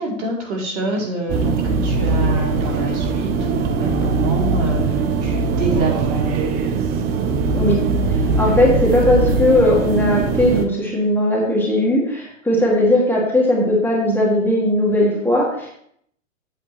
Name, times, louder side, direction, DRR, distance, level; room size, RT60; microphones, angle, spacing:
voice 1, 0.0-6.5, right 2 dB, 55° right, -2 dB, 3.1 m, -26 dB
sound 1, 1.3-10.7, right 4 dB, 25° right, 0.5 m, -20 dB
voice 2, 8.4-15.7, left 1 dB, 5° left, -4 dB, 2.2 m, -18 dB
8.5 x 8.2 x 3.1 m, 0.67 s
hypercardioid pair, 120°, 40 cm